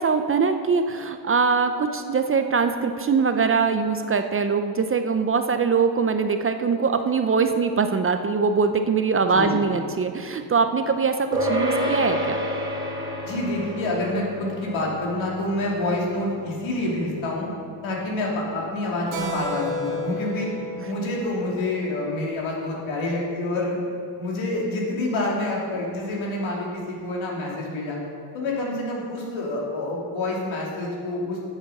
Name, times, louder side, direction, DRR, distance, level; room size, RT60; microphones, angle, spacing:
voice 1, 0.0-12.4, right 5 dB, 30° right, 8 dB, 0.5 m, -22 dB
sound 1, 11.3-21.0, equal, 10° right, 2.5 m, -31 dB
voice 2, 13.2-17.5 17.8-20.5 20.8-23.8 24.2-28.0 28.3-31.4, left 2 dB, 75° left, -3 dB, 2.8 m, -27 dB
Keyboard (musical), 19.1-23.2, equal, 90° right, 1.9 m, -34 dB
8.8 x 7.3 x 6.5 m, 2.4 s
cardioid pair, 100°, 47 cm